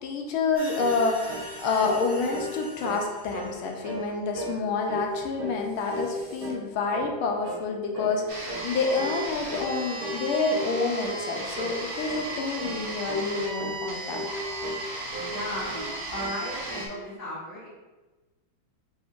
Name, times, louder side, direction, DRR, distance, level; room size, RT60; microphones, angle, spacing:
voice 1, 0.0-14.2, left 4 dB, 85° left, 2 dB, 1.5 m, -28 dB
sound 1, 0.5-4.3 5.2-5.3 5.6-6.5, equal, 45° left, 1.6 m, -44 dB
sound 2, 0.8-1.0 1.3-1.5 1.8-3.0 3.3-3.6 3.8-4.1 4.4-4.6 4.9-5.6 5.9-6.7 6.9-7.2 7.4-7.7 7.9-8.2 8.5-8.7 9.0-9.2 9.5-9.7 10.0-10.2 10.5-10.8 11.0-11.2 11.6-11.8 12.1-12.3 12.6-12.8 13.1-13.8 14.1-14.9 15.1-15.9 16.2-16.9, equal, 65° right, 1.1 m, -36 dB
sound 3, 8.3-16.9, right 2 dB, 80° right, 0.5 m, -36 dB
voice 2, 15.3-17.7, equal, 15° left, -7 dB, 0.7 m, -35 dB
5.1 x 3.6 x 2.4 m, 1.2 s
omnidirectional pair, 2.2 m